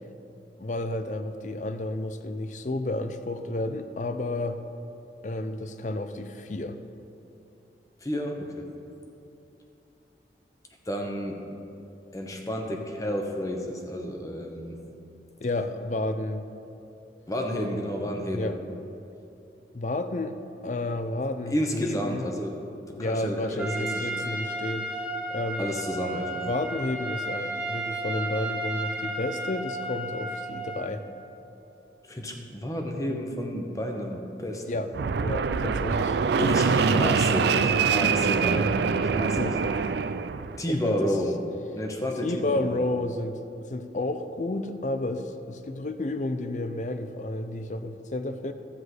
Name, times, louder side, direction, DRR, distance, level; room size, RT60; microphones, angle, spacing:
voice 1, 0.6-4.6 5.2-6.8 15.4-16.4 18.3-18.6 19.7-20.4 20.6-22.3 23.0-25.0 25.3-25.7 26.5-31.0 34.7-34.9 35.2-36.2 39.4-39.6 40.7-41.1 42.2-48.5, left 2 dB, 45° left, 9 dB, 0.5 m, -31 dB
voice 2, 8.0-8.6 10.9-11.4 12.1-14.8 17.3-18.5 21.5-22.6 23.0-24.1 25.6-26.5 32.1-34.6 36.4-39.4 40.6-41.3 41.8-42.8, equal, 20° left, 2 dB, 1.0 m, -31 dB
Trumpet, 23.6-30.9, right 2 dB, 10° right, 1.1 m, -33 dB
Fixed-wing aircraft airplane, 34.9-40.6, right 5 dB, 70° right, 0.4 m, -24 dB
13.0 x 4.9 x 8.0 m, 2.8 s
head